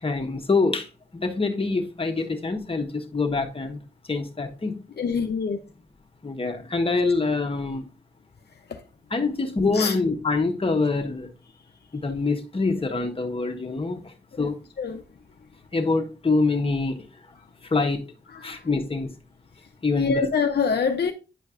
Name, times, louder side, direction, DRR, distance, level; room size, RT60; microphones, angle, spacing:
voice 1, 0.0-3.8 4.1-4.8 6.2-7.8 9.1-11.3 11.9-14.6 15.7-17.1 17.6-18.1 18.4-19.1 19.8-20.3, left 3 dB, 30° left, 1.1 m, -25 dB
voice 2, 5.0-5.6 8.7-8.8 9.7-9.9 14.3-14.5 14.8-15.0 18.3-18.6 19.9-21.1, left 5 dB, 70° left, 0.6 m, -25 dB
9.3 x 5.2 x 2.5 m
wide cardioid pair, 80°, 18 cm